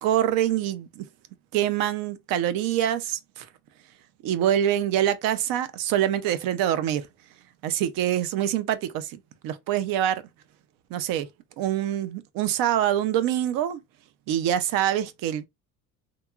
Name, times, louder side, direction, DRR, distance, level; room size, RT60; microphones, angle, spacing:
voice 1, 0.0-1.1 1.5-3.5 4.2-7.1 7.6-10.2 10.9-11.3 11.6-13.8 14.3-15.5, right 11 dB, 70° right, 0.5 m, -25 dB
2.9 x 2.2 x 2.3 m
cardioid pair, 135°, 36 cm